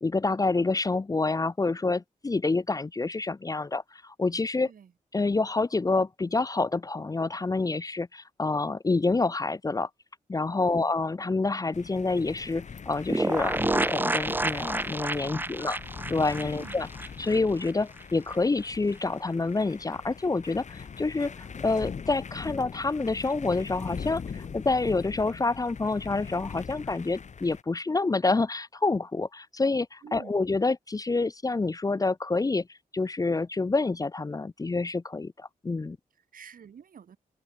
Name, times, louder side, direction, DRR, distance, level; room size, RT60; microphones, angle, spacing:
voice 1, 0.0-4.7 5.1-9.9 10.3-15.8 16.1-16.9 17.2-32.7 32.9-36.0, left 3 dB, 25° left, 0.6 m, -27 dB
sound 1, 11.7-27.6, left 6 dB, 60° left, 1.7 m, -41 dB
sound 2, 13.1-17.7 18.0-18.1 18.3-18.4, right 2 dB, 15° right, 0.7 m, -29 dB
voice 2, 15.2-16.1 16.4-16.8 30.0-30.4 36.1-37.2, right 7 dB, 85° right, 5.5 m, -49 dB
wide cardioid pair, 100°, 14 cm